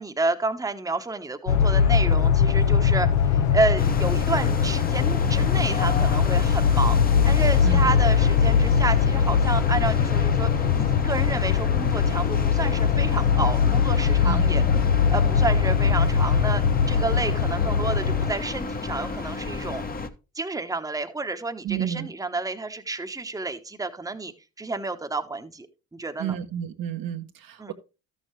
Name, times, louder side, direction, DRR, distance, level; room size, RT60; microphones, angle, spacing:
voice 1, 0.0-14.6 15.1-19.8 20.3-24.3 24.6-25.7 25.9-26.4 27.6-27.7, right 3 dB, 10° right, 1.1 m, -30 dB
sound 1, 1.5-18.3, left 7 dB, 75° left, 1.0 m, -21 dB
sound 2, 3.8-20.1, left 4 dB, 20° left, 1.0 m, -32 dB
voice 2, 7.6-8.0 14.2-14.5 21.6-22.1 26.2-27.7, right 9 dB, 60° right, 1.2 m, -30 dB
13.0 x 6.8 x 3.2 m
hypercardioid pair, 65°, 40 cm